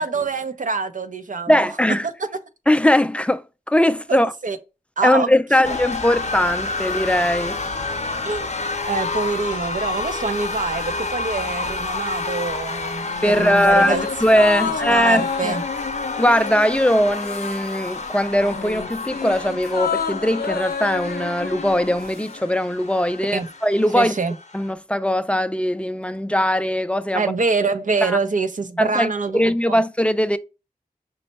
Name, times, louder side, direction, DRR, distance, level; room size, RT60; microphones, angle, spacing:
voice 1, 0.0-1.6 4.1-4.6 5.0-5.3 5.6-5.7 8.2-8.5 8.9-13.1 13.4-14.0 14.6-15.6 23.3-23.5 23.9-24.3 27.1-29.8, right 4 dB, 60° right, 0.6 m, -25 dB
voice 2, 1.5-2.1 2.7-4.3 5.0-7.6 13.2-15.6 16.2-24.2 24.5-27.2 28.0-28.2 28.8-30.4, left 1 dB, 10° left, 0.3 m, -20 dB
Shooting In Progress, 5.6-24.7, left 3 dB, 50° left, 0.7 m, -30 dB
sound 1, 13.0-17.8 18.1-22.4 22.7-22.8, left 6 dB, 90° left, 0.5 m, -30 dB
5.3 x 2.1 x 4.0 m
wide cardioid pair, 50°, 15 cm